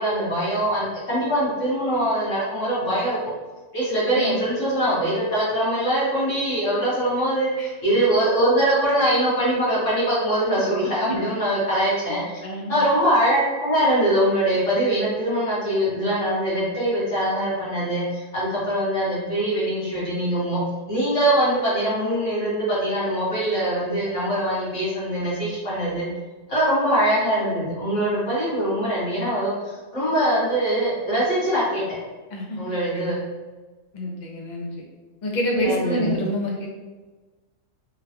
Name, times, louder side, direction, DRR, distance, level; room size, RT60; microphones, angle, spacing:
voice 1, 0.0-3.2 3.7-12.2 12.7-20.6 20.9-26.1 26.5-29.5 29.9-31.8 32.6-33.2 35.6-36.1, right 1 dB, 65° left, -9 dB, 1.9 m, -22 dB
voice 2, 12.4-12.8 32.3-32.6 33.9-34.7 35.2-36.7, equal, 45° left, -1 dB, 0.6 m, -27 dB
3.8 x 2.3 x 2.8 m, 1.2 s
omnidirectional pair, 1.4 m